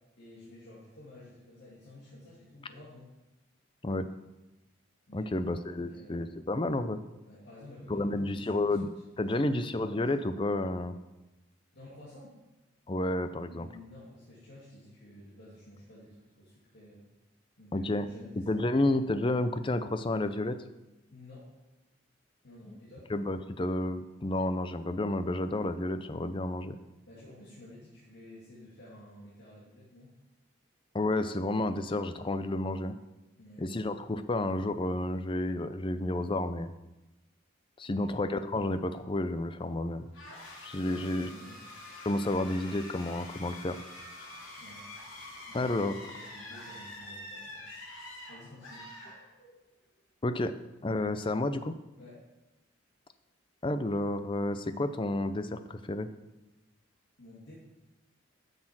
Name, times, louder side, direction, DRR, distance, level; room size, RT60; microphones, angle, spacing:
voice 1, 0.2-3.1 5.1-6.2 7.2-8.9 9.3-10.0 11.7-12.4 13.4-17.1 17.6-18.4 21.1-21.5 22.4-23.1 27.1-30.1 33.3-33.7 37.9-38.2 40.8-41.6 44.6-44.9 45.4-45.9 46.1-48.9 52.0-52.2 57.2-57.5, left 1 dB, 55° left, -7 dB, 2.4 m, -52 dB
voice 2, 5.1-7.0 7.9-8.9 9.2-11.0 12.9-13.7 17.7-18.1 18.4-20.6 22.7-22.8 23.1-26.8 30.9-33.0 33.6-36.7 37.8-40.0 40.6-41.3 42.0-43.8 45.5-46.0 50.2-50.5 50.8-51.7 53.6-56.1, left 2 dB, 25° left, 11 dB, 0.5 m, -31 dB
sound 1, 40.1-49.7, left 1 dB, 75° left, 3.1 m, -46 dB
9.6 x 6.7 x 6.0 m, 1.0 s
head